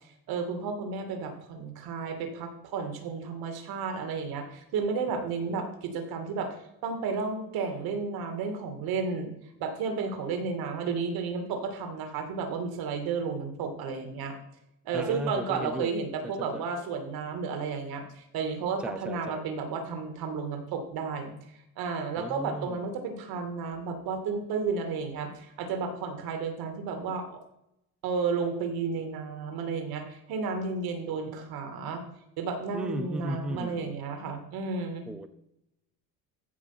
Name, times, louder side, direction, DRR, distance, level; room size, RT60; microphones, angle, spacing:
voice 1, 0.3-6.5 6.8-9.3 9.6-14.4 14.8-21.3 21.8-27.4 28.0-32.0 32.4-35.0, right 5 dB, 70° right, 6 dB, 2.5 m, -32 dB
voice 2, 14.9-15.9 16.4-16.6 18.8-19.4 22.2-22.9 32.7-33.9 35.1-35.3, right 1 dB, 5° right, 9 dB, 0.5 m, -36 dB
15.0 x 5.6 x 6.0 m, 0.81 s
cardioid pair, 140°, 38 cm